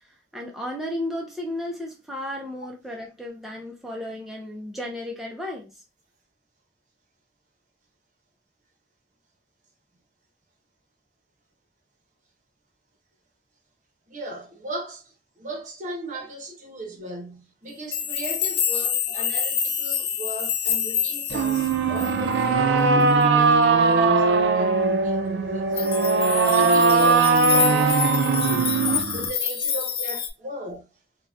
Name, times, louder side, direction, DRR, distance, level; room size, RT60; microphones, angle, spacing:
voice 1, 0.0-5.8 19.1-19.3, left 1 dB, ahead, 0.4 m, -34 dB
voice 2, 14.1-26.0 26.5-30.9, right 1 dB, 45° right, 0.8 m, -37 dB
sound 1, 17.9-22.4 25.8-30.3, left 8 dB, 60° left, 0.5 m, -27 dB
sound 2, 21.3-29.3, right 4 dB, 75° right, 0.4 m, -20 dB
3.8 x 2.2 x 2.3 m
head